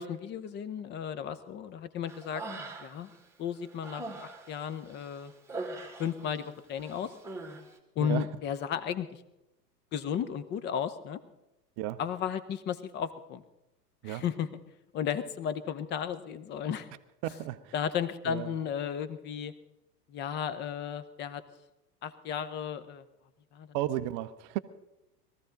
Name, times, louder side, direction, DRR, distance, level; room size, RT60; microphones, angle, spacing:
voice 1, 0.0-2.4 2.8-3.1 3.4-5.3 6.0-7.1 8.0-9.2 9.9-11.2 12.0-13.4 14.0-14.5 14.9-16.9 17.7-19.5 20.1-21.4 22.0-23.1 23.5-23.8, left 8 dB, 20° left, 13 dB, 0.8 m, -34 dB
Human voice, 2.1-3.2 3.5-6.5 6.8-7.6, right 2 dB, 5° right, 1.7 m, -42 dB
voice 2, 17.2-17.7 18.3-18.5 23.7-24.6, right 14 dB, 30° right, 14 dB, 0.6 m, -33 dB
21.5 x 14.5 x 3.9 m, 0.93 s
figure-of-eight pair, 95°, 48 cm